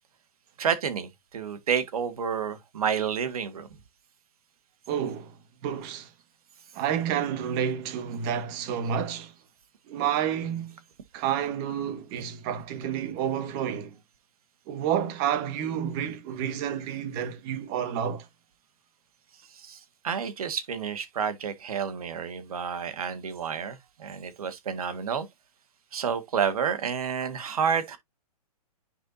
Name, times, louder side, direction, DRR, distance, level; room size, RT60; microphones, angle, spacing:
voice 1, 0.6-3.7 19.5-19.8 20.0-25.3 25.9-28.0, right 7 dB, 65° right, 1.7 m, -30 dB
voice 2, 4.9-5.3 5.6-6.1 6.7-9.3 9.9-10.7 11.1-14.0 14.7-18.3, right 9 dB, 35° right, 1.6 m, -30 dB
9.9 x 4.5 x 2.7 m
hypercardioid pair, 125°, 20 cm